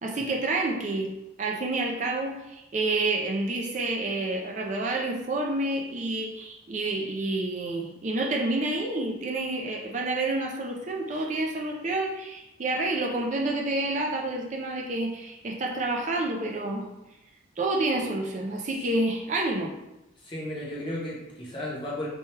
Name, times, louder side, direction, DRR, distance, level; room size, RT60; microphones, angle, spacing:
voice 1, 0.0-16.9 17.6-19.7, right 2 dB, 35° right, 0 dB, 0.4 m, -29 dB
voice 2, 20.2-22.1, left 1 dB, 25° left, -4 dB, 0.7 m, -34 dB
4.3 x 2.2 x 3.2 m, 0.91 s
head